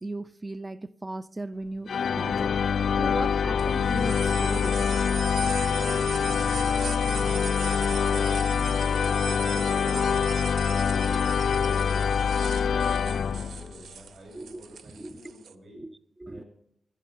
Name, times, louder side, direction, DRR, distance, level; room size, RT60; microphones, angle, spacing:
voice 1, 0.0-2.5 3.0-4.8 14.3-14.6 15.0-15.2 15.7-16.4, right 2 dB, 15° right, 0.4 m, -37 dB
sound 1, 1.9-13.8, left 7 dB, 70° left, 0.4 m, -25 dB
sound 2, 3.6-15.5, right 7 dB, 85° right, 0.5 m, -39 dB
voice 2, 5.8-8.4 9.3-11.7 12.6-15.8 16.3-16.5, right 1 dB, 60° right, 6.1 m, -49 dB
17.5 x 6.8 x 5.4 m
wide cardioid pair, 160°, 0 cm